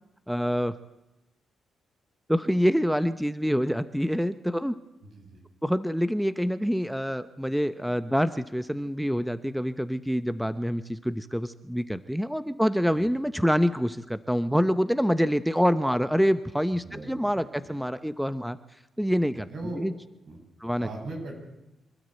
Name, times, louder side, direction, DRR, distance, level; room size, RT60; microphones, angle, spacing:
voice 1, 0.3-0.7 2.3-4.8 5.6-18.6 19.0-19.5 19.8-19.9 20.6-20.9, equal, ahead, 12 dB, 0.8 m, -26 dB
voice 2, 5.0-5.4 13.0-13.1 16.7-17.7 19.5-19.8 20.3-20.4 20.8-21.4, right 2 dB, 70° right, 2 dB, 7.4 m, -39 dB
25.5 x 13.0 x 9.0 m, 0.96 s
cardioid pair, 80°, 0 cm